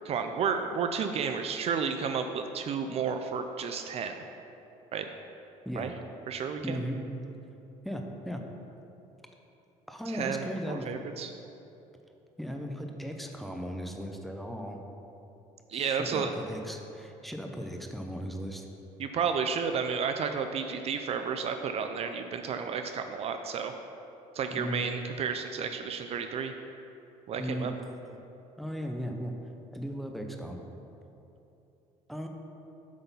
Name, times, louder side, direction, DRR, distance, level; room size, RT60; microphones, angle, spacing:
voice 1, 0.0-4.1 4.9-5.1 5.7-5.9 6.3-6.8 10.1-11.3 15.7-16.3 19.0-23.7 24.3-26.5 27.3-27.7, right 6 dB, 50° right, 6 dB, 0.4 m, -32 dB
voice 2, 6.6-7.1 7.8-8.4 9.9-11.0 12.4-14.8 15.7-18.7 24.5-24.9 27.4-27.7 28.6-29.3 29.7-30.6 32.1-32.3, equal, ahead, 2 dB, 0.7 m, -36 dB
8.2 x 3.9 x 5.4 m, 2.9 s
cardioid pair, 105°, 14 cm